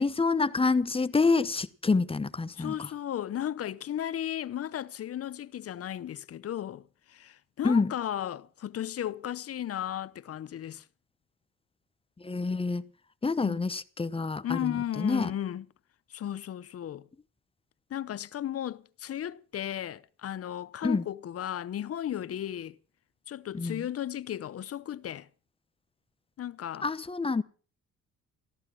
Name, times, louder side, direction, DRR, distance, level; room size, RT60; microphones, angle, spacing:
voice 1, 0.0-2.9 7.6-7.9 12.2-12.8 13.2-15.3 20.8-21.0 23.5-23.8 26.8-27.4, left 4 dB, 20° left, 0.9 m, -27 dB
voice 2, 2.6-10.8 13.4-13.6 14.4-15.6 16.1-17.1 17.9-22.8 23.3-25.3 26.4-26.9, left 11 dB, 50° left, 0.8 m, -35 dB
14.5 x 13.5 x 6.0 m
cardioid pair, 90°, 30 cm